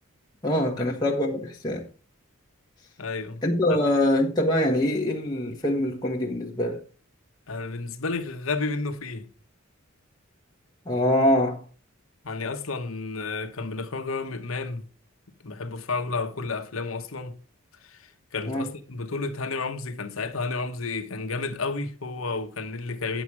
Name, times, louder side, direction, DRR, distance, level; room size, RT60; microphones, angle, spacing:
voice 1, 0.4-1.9 3.4-6.8 10.9-11.6 18.4-18.7, left 1 dB, 20° left, 1.3 m, -24 dB
voice 2, 3.0-3.4 3.7-3.8 7.5-9.3 12.2-14.9 15.4-17.4 17.8-23.2, left 3 dB, 70° left, 1.1 m, -31 dB
10.0 x 7.1 x 4.7 m
head